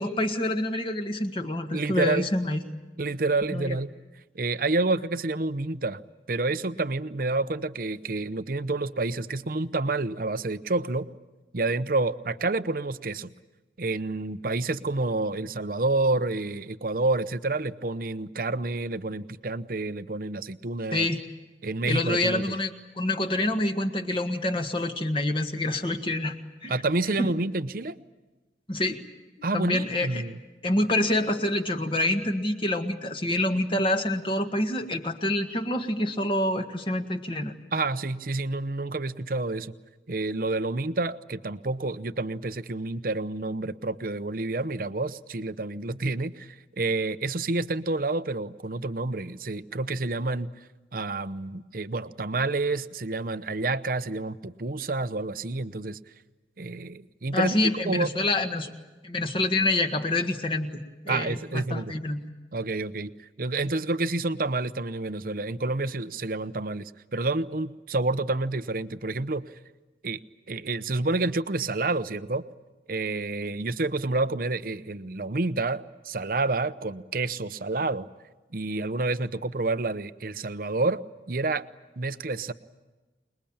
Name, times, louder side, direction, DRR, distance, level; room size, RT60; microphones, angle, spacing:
voice 1, 0.0-2.6 3.5-3.8 20.9-21.2 21.8-22.7 23.0-26.3 26.6-26.7 27.2-27.3 28.7-29.0 29.5-30.2 30.6-37.5 57.3-58.7 59.0-62.2, left 1 dB, 30° left, 6 dB, 1.7 m, -27 dB
voice 2, 1.7-2.3 3.0-3.9 4.3-6.0 6.3-11.1 11.5-13.3 13.8-21.1 21.6-22.4 26.7-28.0 29.4-30.3 37.7-39.7 40.1-50.5 50.9-56.0 56.6-57.6 57.8-58.1 61.1-61.9 62.5-69.4 70.0-70.2 70.5-72.4 72.9-78.1 78.5-81.0 81.3-81.7 82.0-82.5, right 2 dB, 55° right, 13 dB, 0.8 m, -29 dB
27.0 x 21.0 x 8.8 m, 1.2 s
head